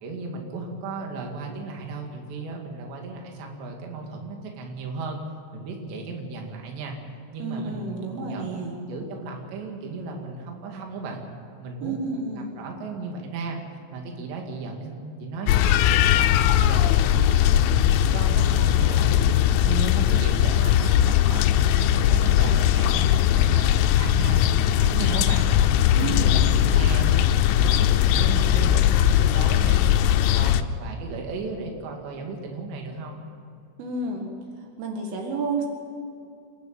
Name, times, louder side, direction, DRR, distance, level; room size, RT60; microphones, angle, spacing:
voice 1, 0.0-5.2 5.5-7.0 7.3-11.2 11.6-13.6 13.9-16.9 17.4-21.5 21.8-23.1 23.3-25.5 26.0-29.8 30.1-33.2, right 3 dB, 65° right, 1 dB, 4.3 m, -35 dB
voice 2, 7.4-8.8 11.8-12.6 25.9-26.4 33.8-34.3 34.8-35.7, right 3 dB, 80° right, 2 dB, 4.4 m, -30 dB
sound 1, 15.5-30.6, left 11 dB, 85° left, 3.1 m, -19 dB
27.5 x 11.5 x 9.1 m, 2.4 s
omnidirectional pair, 5.7 m